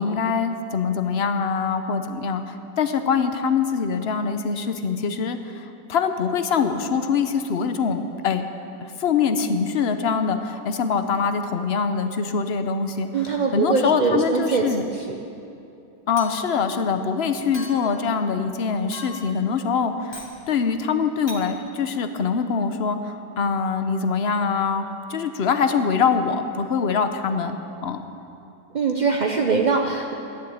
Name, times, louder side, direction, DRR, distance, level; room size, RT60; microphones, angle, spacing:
voice 1, 0.0-8.4 9.0-14.9 16.1-28.0, left 5 dB, 50° left, 8 dB, 0.8 m, -24 dB
voice 2, 13.1-14.7 28.7-30.1, right 4 dB, 55° right, 2 dB, 0.5 m, -22 dB
Chink clink, 16.2-16.7 17.5-18.0 18.9-19.4 20.1-20.4 21.3-21.5, left 2 dB, 15° left, 1.6 m, -38 dB
12.5 x 10.5 x 8.7 m, 2.8 s
omnidirectional pair, 1.8 m